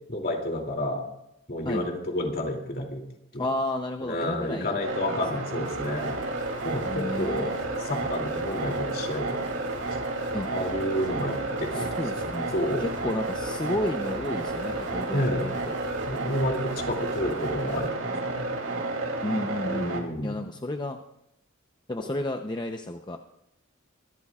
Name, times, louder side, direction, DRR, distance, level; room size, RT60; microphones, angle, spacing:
voice 1, 0.1-1.0 1.5-3.0 3.3-3.5 4.0-6.2 6.6-7.5 7.8-9.5 10.5-12.2 12.5-12.8 15.1-15.5 16.0-18.0 18.3-18.6 19.6-20.4, left 1 dB, 45° left, 1 dB, 2.7 m, -30 dB
voice 2, 3.4-4.8 6.8-7.5 10.3-10.5 11.6-12.5 12.8-15.8 19.2-20.0 20.2-21.0 21.9-23.2, left 1 dB, 20° left, 4 dB, 0.7 m, -32 dB
sound 1, 4.8-20.0, right 2 dB, 80° right, 2.9 m, -31 dB
sound 2, 5.6-17.9, right 1 dB, 55° right, 2.7 m, -48 dB
24.0 x 12.5 x 2.4 m, 0.81 s
head